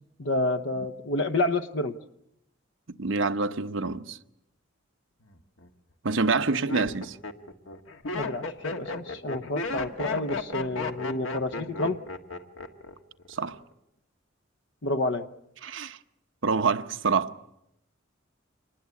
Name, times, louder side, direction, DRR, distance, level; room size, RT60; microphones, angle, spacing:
voice 1, 0.2-2.0 6.7-6.9 8.1-12.0 14.8-15.3, left 2 dB, 65° left, 0.9 m, -29 dB
voice 2, 3.0-4.2 6.0-7.2 13.3-13.6 15.6-16.0 16.4-17.3, right 4 dB, 70° right, 0.9 m, -26 dB
Laughter, 5.3-5.7 6.3-12.9 13.2-13.7, left 3 dB, 80° left, 1.6 m, -34 dB
26.0 x 20.0 x 8.4 m
head